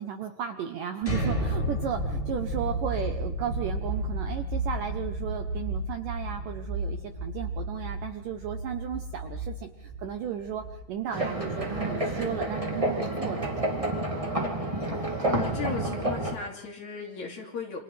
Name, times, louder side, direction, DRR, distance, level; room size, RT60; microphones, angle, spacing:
voice 1, 0.0-14.2, right 9 dB, 70° right, 6 dB, 2.1 m, -35 dB
sound 1, 1.0-12.8, right 1 dB, 10° left, 3.9 m, -32 dB
sound 2, 11.1-16.3, right 1 dB, 20° right, 0.9 m, -29 dB
voice 2, 15.3-17.8, left 5 dB, 50° left, 0 dB, 3.6 m, -36 dB
29.0 x 27.0 x 3.4 m, 0.88 s
omnidirectional pair, 4.9 m